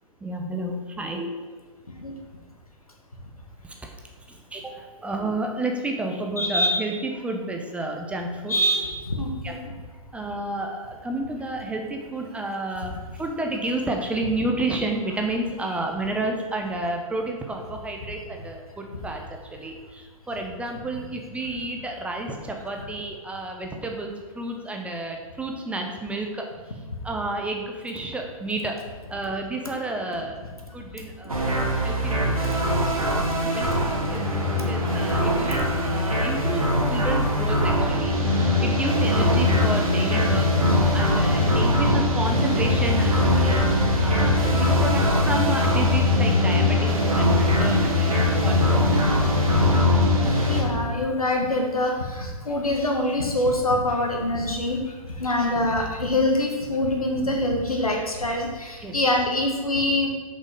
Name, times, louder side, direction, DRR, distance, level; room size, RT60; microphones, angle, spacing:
voice 1, 0.2-1.5 3.6-3.7 4.3-8.5 9.4-9.5 10.1-19.2 19.5-26.5 27.0-30.4 30.7-32.5 33.4-36.6 36.9-40.5 40.9-43.6 44.0-49.3 58.8-59.0, right 2 dB, 5° right, 2 dB, 0.7 m, -31 dB
voice 2, 6.4-6.8 8.5-9.7 33.9-35.1 36.4-36.5 50.5-54.8 55.2-60.1, left 1 dB, 85° left, 1 dB, 1.6 m, -25 dB
sound 1, 31.3-50.6, left 1 dB, 85° right, 1.9 m, -21 dB
6.6 x 5.5 x 5.2 m, 1.4 s
figure-of-eight pair, 120°, 18 cm